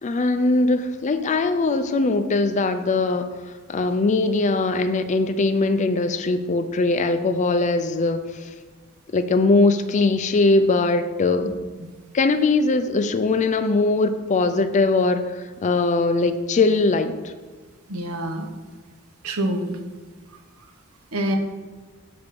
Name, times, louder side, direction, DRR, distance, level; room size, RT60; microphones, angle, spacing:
voice 1, 0.0-3.3 3.7-8.5 9.1-11.5 12.1-17.3, left 3 dB, 35° left, 9 dB, 0.4 m, -21 dB
voice 2, 17.9-18.5 19.2-19.8 21.1-21.4, right 1 dB, 80° right, 4 dB, 1.0 m, -26 dB
5.9 x 5.2 x 6.7 m, 1.4 s
head